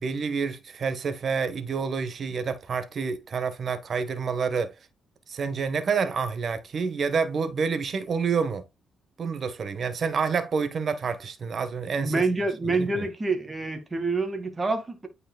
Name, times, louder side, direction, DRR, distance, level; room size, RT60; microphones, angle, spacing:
voice 1, 0.0-4.7 5.3-8.6 9.2-12.2 12.7-13.1, right 5 dB, 50° right, 1.3 m, -28 dB
voice 2, 12.0-15.1, right 3 dB, 25° right, 1.9 m, -27 dB
9.1 x 4.9 x 2.3 m
cardioid pair, 90°, 0 cm